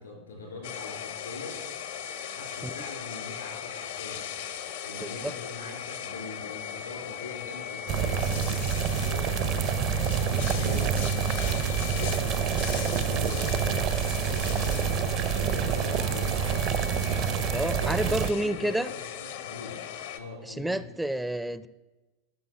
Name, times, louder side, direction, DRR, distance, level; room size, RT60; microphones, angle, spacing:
voice 1, 0.0-1.6 2.2-4.3 4.8-12.3 12.7-15.0 15.5-16.7 17.5-19.8 20.1-20.8, left 3 dB, 90° left, 1 dB, 3.9 m, -42 dB
sound 1, 0.6-20.2, left 9 dB, 75° left, 0.9 m, -38 dB
voice 2, 5.0-5.3 17.5-18.9 20.4-21.7, right 1 dB, 5° right, 15 dB, 0.4 m, -29 dB
sound 2, 7.9-18.3, right 7 dB, 50° right, 0.6 m, -27 dB
12.5 x 5.6 x 6.2 m, 1.1 s
hypercardioid pair, 95°, 0 cm